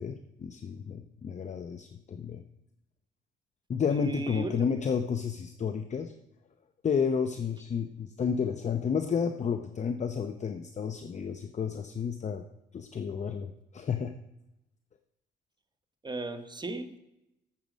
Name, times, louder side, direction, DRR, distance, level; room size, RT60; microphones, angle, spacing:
voice 1, 0.0-2.4 3.7-6.1 6.8-12.4 12.7-14.1, left 6 dB, 35° left, 8 dB, 0.7 m, -31 dB
voice 2, 3.9-4.6 16.0-17.0, right 3 dB, 20° right, 8 dB, 1.1 m, -35 dB
13.0 x 7.6 x 5.1 m, 0.89 s
cardioid pair, 90°, 20 cm